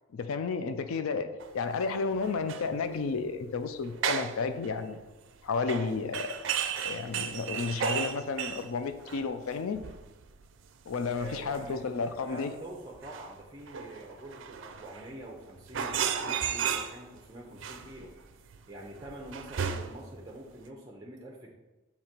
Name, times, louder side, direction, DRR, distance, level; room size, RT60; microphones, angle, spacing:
voice 1, 0.1-1.3 1.5-5.0 5.4-6.4 6.8-9.8 10.9-12.5, left 4 dB, 90° left, 9 dB, 0.4 m, -32 dB
sound 1, 1.4-1.5 2.2-2.7 2.9-3.2 3.9-4.4 4.6-5.0 5.7-9.5 9.7-10.6 10.9-11.8 12.2-12.3 12.6-12.7 13.0-15.3 15.6-17.2 17.6-20.2 20.6-20.7, right 7 dB, 65° right, 0.4 m, -34 dB
voice 2, 11.2-18.1 18.7-21.5, right 1 dB, 20° right, 0 dB, 0.6 m, -45 dB
7.5 x 2.9 x 4.3 m, 1.1 s
head